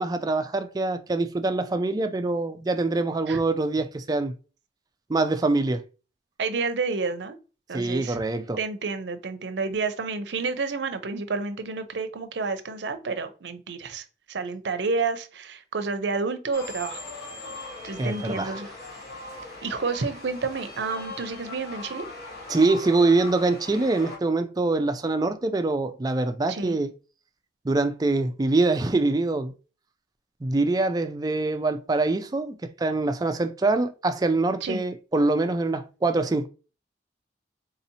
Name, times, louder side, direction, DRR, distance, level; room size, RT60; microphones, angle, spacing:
voice 1, 0.0-4.3 5.1-5.8 7.7-8.6 18.0-18.6 22.5-26.9 27.6-29.5 30.4-36.5, right 3 dB, 20° right, 0.3 m, -24 dB
voice 2, 6.4-7.4 7.7-8.2 8.6-17.0 17.8-18.7 19.6-22.1 26.5-26.8 34.6-34.8, right 4 dB, 75° right, 0.5 m, -30 dB
sound 1, 16.5-24.2, left 3 dB, 60° left, 1.3 m, -39 dB
4.0 x 2.7 x 2.7 m
head